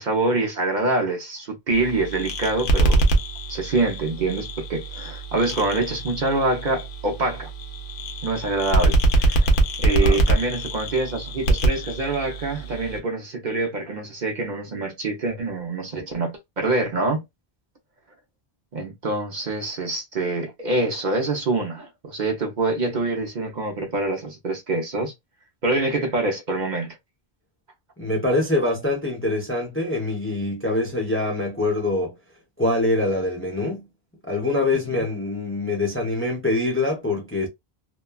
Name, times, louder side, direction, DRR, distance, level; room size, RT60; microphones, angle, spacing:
voice 1, 0.0-3.0 3.5-7.5 8.2-17.2 18.7-25.1 25.6-27.0 34.9-35.0, right 2 dB, 55° right, 0.7 m, -25 dB
sound 1, 1.7-13.0, right 2 dB, 60° left, 0.8 m, -24 dB
voice 2, 9.9-10.2 28.0-32.1 32.6-33.9 34.3-37.5, left 2 dB, 15° left, 0.5 m, -24 dB
2.9 x 2.2 x 2.2 m
omnidirectional pair, 1.0 m